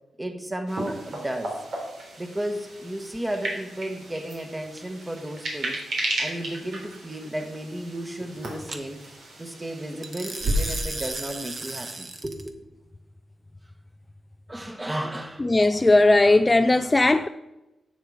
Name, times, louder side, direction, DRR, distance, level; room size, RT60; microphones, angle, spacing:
voice 1, 0.2-1.6 2.2-5.8 6.2-9.1 9.4-12.6 14.5-15.5, right 1 dB, 15° right, 1.4 m, -33 dB
sound 1, 0.7-10.8, right 1 dB, 75° right, 3.7 m, -34 dB
sound 2, 4.8-5.2 8.7-8.8 10.0-12.5, right 2 dB, 35° right, 1.2 m, -35 dB
voice 2, 15.4-17.3, left 2 dB, 20° left, 0.4 m, -18 dB
11.0 x 8.1 x 5.0 m
cardioid pair, 90°, 0 cm